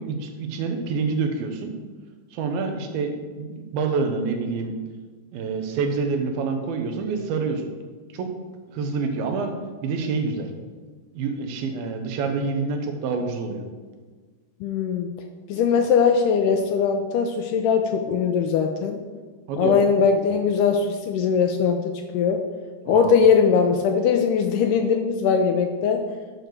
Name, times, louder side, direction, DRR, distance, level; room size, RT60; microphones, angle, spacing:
voice 1, 0.0-1.7 2.3-4.7 5.3-7.6 8.1-8.3 8.7-9.5 9.8-10.5 11.1-13.6 19.5-19.8 22.9-23.2, right 4 dB, 85° right, 5 dB, 2.8 m, -27 dB
voice 2, 14.6-15.1 15.5-19.0 19.6-22.4 22.9-26.0, left 6 dB, 80° left, 5 dB, 1.9 m, -20 dB
9.8 x 4.6 x 6.6 m, 1.4 s
omnidirectional pair, 4.2 m